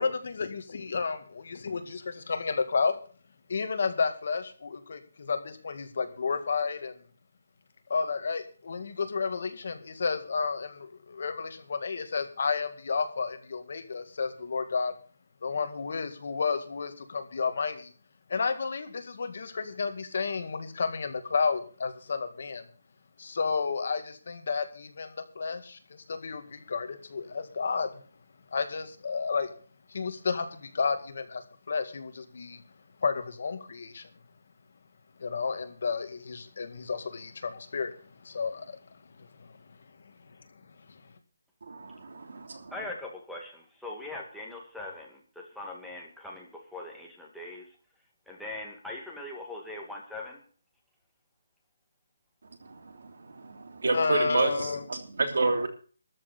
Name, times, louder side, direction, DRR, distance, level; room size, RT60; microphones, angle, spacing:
voice 1, 0.0-3.0 3.5-6.9 7.9-14.9 15.4-17.9 18.3-22.6 23.2-25.8 26.1-27.9 28.5-29.5 29.9-32.6 33.0-34.1 35.2-37.9 38.2-38.8 39.4-39.5 53.9-54.8, left 5 dB, 55° left, 8 dB, 2.0 m, -31 dB
voice 2, 41.6-42.7 52.6-55.7, right 3 dB, 75° right, 6 dB, 3.2 m, -30 dB
voice 3, 42.7-47.7 48.3-50.4, left 2 dB, ahead, -3 dB, 2.1 m, -41 dB
13.0 x 6.5 x 8.3 m, 0.40 s
hypercardioid pair, 175°, 0 cm